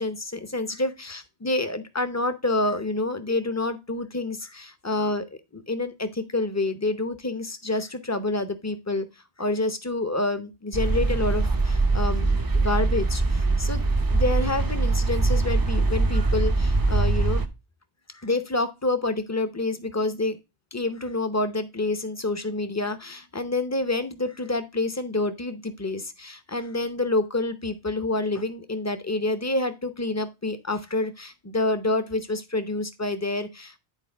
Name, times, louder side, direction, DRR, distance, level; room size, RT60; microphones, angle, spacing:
voice 1, 0.0-5.2 5.5-9.1 9.4-17.4 18.1-20.4 20.7-33.8, left 2 dB, 20° left, 10 dB, 0.6 m, -28 dB
sound 1, 10.7-17.5, right 3 dB, 25° right, 0.5 m, -22 dB
9.9 x 4.5 x 3.4 m, 0.25 s
omnidirectional pair, 1.2 m